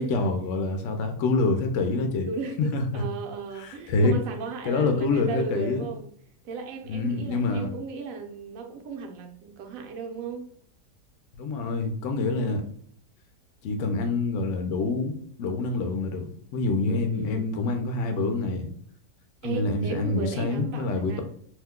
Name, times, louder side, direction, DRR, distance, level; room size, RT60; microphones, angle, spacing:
voice 1, 0.0-2.3 2.6-3.0 3.6-4.1 4.6-5.9 6.9-7.7 11.3-12.6 13.6-16.3 16.5-18.7 19.4-21.2, left 3 dB, 65° left, 6 dB, 0.8 m, -26 dB
voice 2, 2.3-6.1 6.4-10.5 17.1-17.5 19.4-21.2, right 5 dB, 65° right, 4 dB, 0.9 m, -35 dB
2.8 x 2.2 x 3.5 m, 0.62 s
omnidirectional pair, 1.7 m